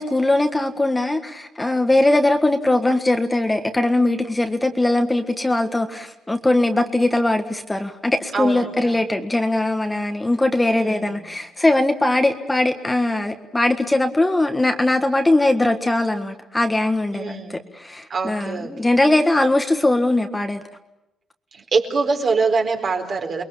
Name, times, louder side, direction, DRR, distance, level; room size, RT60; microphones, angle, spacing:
voice 1, 0.0-20.6, left 2 dB, 15° left, 1.6 m, -20 dB
voice 2, 8.3-9.0 10.8-11.2 17.1-17.6 18.1-18.7 21.5-23.4, right 4 dB, 50° right, 4.5 m, -24 dB
29.5 x 21.5 x 7.3 m
cardioid pair, 90°, 0 cm